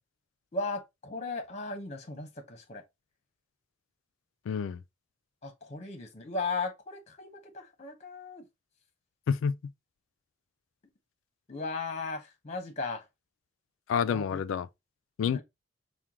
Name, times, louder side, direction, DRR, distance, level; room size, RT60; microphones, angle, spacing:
voice 1, 0.5-2.8 5.4-8.5 11.5-13.1 14.0-14.4 15.2-15.4, left 3 dB, 35° left, 0.9 m, -37 dB
voice 2, 4.5-4.8 9.3-9.7 13.9-14.7 15.2-15.4, left 7 dB, 90° left, 0.3 m, -29 dB
4.5 x 2.2 x 3.4 m
head